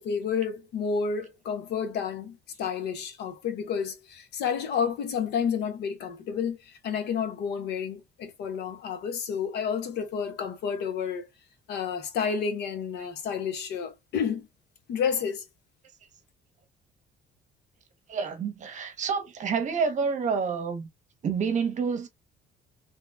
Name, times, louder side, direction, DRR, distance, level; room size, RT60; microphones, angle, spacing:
voice 1, 0.0-11.3 11.7-14.5 14.9-15.4, left 6 dB, 75° left, 1.0 m, -30 dB
voice 2, 18.1-20.9 21.2-22.1, right 5 dB, 45° right, 0.8 m, -28 dB
3.0 x 2.2 x 3.4 m
cardioid pair, 110°, 17 cm